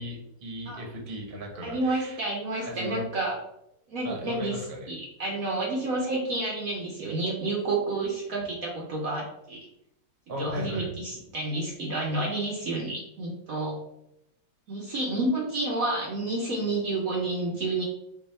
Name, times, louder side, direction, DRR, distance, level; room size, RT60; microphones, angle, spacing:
voice 1, 0.0-2.2 2.6-3.0 4.0-4.9 10.3-10.9, equal, 35° right, 1 dB, 1.0 m, -36 dB
voice 2, 1.6-3.4 3.9-4.6 4.9-9.7 10.4-13.8 14.7-17.8, right 2 dB, 60° right, -2 dB, 1.1 m, -30 dB
4.6 x 2.7 x 4.1 m, 0.81 s
omnidirectional pair, 1.8 m